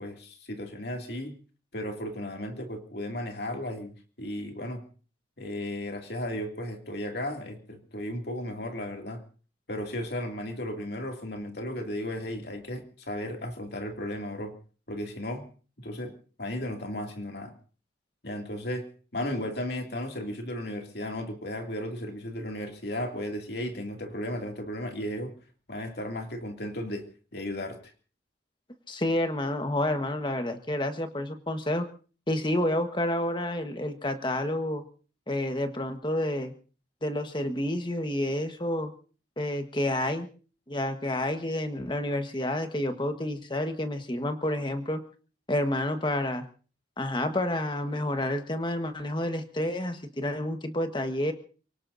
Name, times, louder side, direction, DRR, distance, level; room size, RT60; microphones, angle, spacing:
voice 1, 0.0-1.4 1.7-3.9 4.2-4.8 5.4-9.2 9.7-14.5 14.9-15.5 15.8-16.1 16.4-17.5 18.2-25.3 25.7-27.1 27.3-27.8, left 1 dB, 55° left, 3 dB, 2.6 m, -35 dB
voice 2, 28.9-31.9 32.3-34.8 35.3-36.5 37.0-38.9 39.4-40.3 40.7-45.0 45.5-46.5 47.0-51.3, left 1 dB, 25° left, 7 dB, 1.4 m, -29 dB
29.5 x 18.0 x 2.7 m, 0.39 s
head